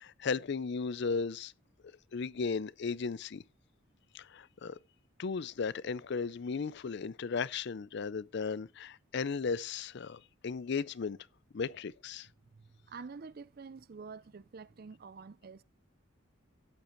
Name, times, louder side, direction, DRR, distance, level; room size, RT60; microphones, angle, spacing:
voice 1, 0.0-1.5 2.1-3.4 4.1-4.8 5.2-11.2 11.5-12.3, left 5 dB, 55° left, 0.4 m, -35 dB
voice 2, 12.5-15.6, right 5 dB, 45° right, 0.4 m, -48 dB
13.0 x 8.8 x 3.0 m
head